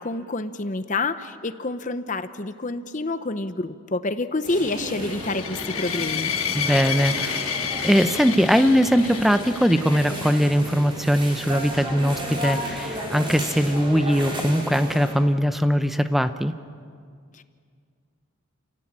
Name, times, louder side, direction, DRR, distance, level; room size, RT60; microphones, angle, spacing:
voice 1, 0.0-6.3 17.4-17.5, left 2 dB, 35° left, 11 dB, 0.8 m, -28 dB
sound 1, 4.4-15.1, equal, 25° right, 5.1 m, -33 dB
sound 2, 5.0-10.3, left 8 dB, 80° left, 1.5 m, -30 dB
voice 2, 6.5-7.5 7.8-16.5, equal, ahead, 9 dB, 0.7 m, -21 dB
29.0 x 17.0 x 8.8 m, 2.1 s
head